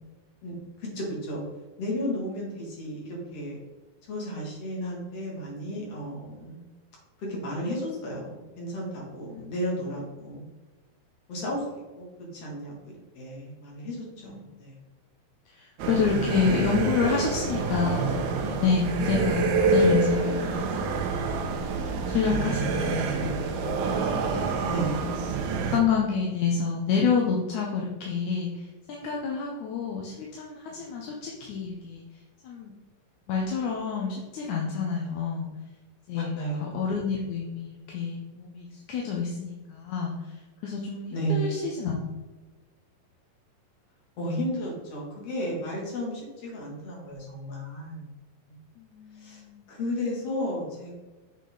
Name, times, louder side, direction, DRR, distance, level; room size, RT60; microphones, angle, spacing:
voice 1, 0.8-1.4 1.8-3.6 4.1-6.6 7.2-10.4 11.3-11.6 12.0-12.1 12.3-14.8 24.7-24.9 36.1-36.8 41.1-41.6 44.2-48.1 48.5-48.6 49.2-49.4 49.7-51.0, equal, 45° left, -3 dB, 3.2 m, -33 dB
voice 2, 14.2-14.5 15.5-20.9 21.4-21.8 22.1-25.2 25.6-32.0 32.4-32.7 33.3-35.5 36.1-37.6 37.9-40.4 40.6-42.0 48.8-49.7, left 5 dB, 65° left, -1 dB, 2.0 m, -29 dB
sound 1, 15.8-25.8, right 4 dB, 75° right, 1.8 m, -27 dB
8.3 x 6.3 x 4.0 m, 1.2 s
omnidirectional pair, 4.2 m